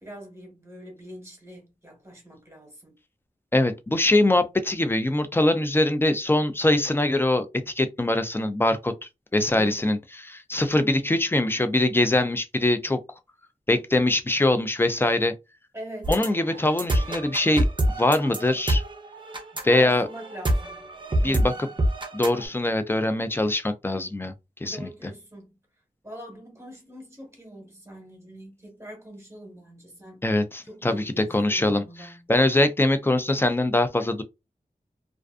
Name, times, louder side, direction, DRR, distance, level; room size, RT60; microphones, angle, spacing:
voice 1, 0.0-3.0 9.5-10.0 15.7-16.1 19.7-20.9 21.2-21.6 24.6-25.6 26.0-30.3 30.6-32.3, right 1 dB, 20° right, 1.1 m, -43 dB
voice 2, 3.5-8.9 9.3-10.0 10.2-13.0 13.7-15.3 16.1-17.7 18.0-18.8 19.6-20.1 21.2-21.5 22.1-24.3 24.6-24.9 30.2-31.8 32.3-34.2, left 1 dB, 15° left, 0.4 m, -22 dB
sound 1, 16.0-22.4, right 1 dB, 35° right, 0.5 m, -26 dB
2.4 x 2.3 x 2.3 m
wide cardioid pair, 80°, 14 cm